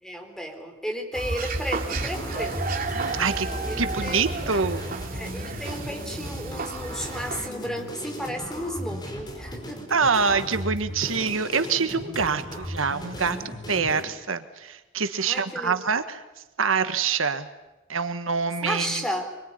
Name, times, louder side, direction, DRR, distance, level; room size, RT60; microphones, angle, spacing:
voice 1, 0.0-2.6 3.7-4.7 5.1-9.9 15.2-15.8 18.6-19.4, equal, 5° left, 4 dB, 4.1 m, -33 dB
sound 1, 1.1-7.5, right 3 dB, 45° right, 3.3 m, -32 dB
sound 2, 1.8-14.0, equal, 20° left, 5.2 m, -37 dB
voice 2, 2.9-3.5 3.8-4.9 9.9-13.4 13.7-16.2 16.6-17.5 17.9-19.0, right 5 dB, 85° right, 10 dB, 1.5 m, -25 dB
25.5 x 23.5 x 9.9 m, 1.1 s
head